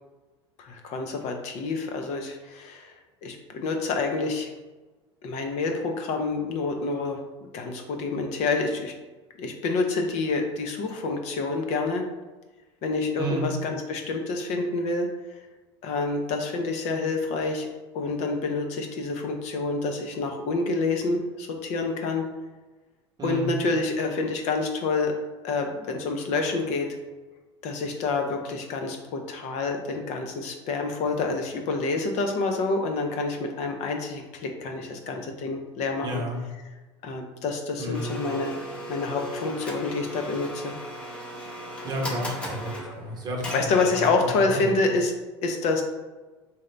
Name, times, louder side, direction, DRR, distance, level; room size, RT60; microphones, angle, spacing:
voice 1, 0.6-2.9 3.2-4.5 5.2-7.2 7.5-8.9 9.4-12.0 12.8-15.1 15.8-17.7 17.9-22.2 23.2-25.1 25.4-27.0 27.6-36.2 37.0-38.6 38.9-40.7 43.5-45.1 45.4-45.8, left 3 dB, 50° left, 4 dB, 0.7 m, -27 dB
voice 2, 13.2-13.5 23.2-23.5 36.0-36.4 37.8-38.1 41.8-43.5 43.9-44.7, right 1 dB, 30° right, 0 dB, 1.1 m, -32 dB
Domestic sounds home sounds, 37.9-44.4, equal, 5° left, 0.7 m, -37 dB
3.7 x 2.8 x 3.3 m, 1.2 s
hypercardioid pair, 95°, 15 cm